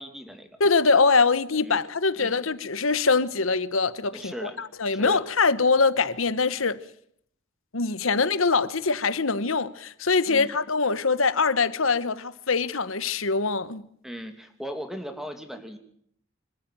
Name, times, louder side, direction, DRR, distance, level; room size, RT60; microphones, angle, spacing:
voice 1, 0.0-0.5 1.6-1.8 2.2-2.4 4.1-4.6 4.9-5.2 8.1-8.2 10.3-10.6 14.0-15.8, equal, ahead, 2.5 m, -38 dB
voice 2, 0.6-6.8 7.7-13.8, left 4 dB, 80° left, 1.2 m, -23 dB
26.0 x 13.5 x 9.3 m
head